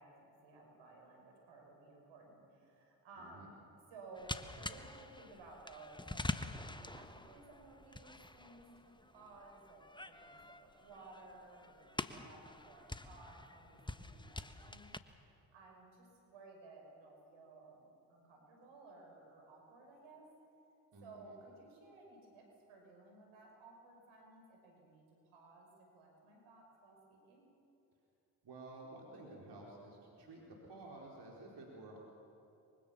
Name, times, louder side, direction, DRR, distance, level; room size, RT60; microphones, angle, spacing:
voice 1, 0.0-3.6 3.9-14.9 15.3-20.3 21.0-27.5, right 2 dB, 75° right, 1 dB, 5.7 m, -57 dB
voice 2, 3.2-3.5 20.9-21.4 28.4-32.0, right 2 dB, 55° right, -2 dB, 4.5 m, -52 dB
sound 1, 4.1-15.0, left 2 dB, 10° left, 1.3 m, -46 dB
24.5 x 23.5 x 7.2 m, 2.8 s
hypercardioid pair, 40°, 48 cm